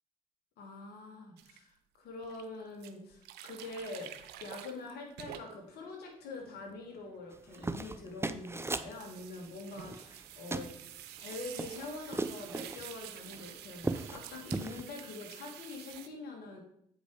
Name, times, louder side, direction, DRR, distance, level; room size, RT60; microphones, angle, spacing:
voice 1, 0.6-4.1 4.4-10.7 11.2-16.6, left 3 dB, 70° left, 1 dB, 2.0 m, -45 dB
sound 1, 1.4-1.6 2.2-2.4 2.8-5.8 6.2-8.1 8.9-16.1, right 11 dB, 80° right, 0.6 m, -49 dB
sound 2, 7.3-8.9 9.8-10.3 10.5-10.7 11.2-12.8 13.3-13.4 13.7-14.2 14.5-14.8, right 2 dB, 15° right, 0.6 m, -36 dB
8.0 x 5.1 x 4.8 m, 0.70 s
hypercardioid pair, 50°, 17 cm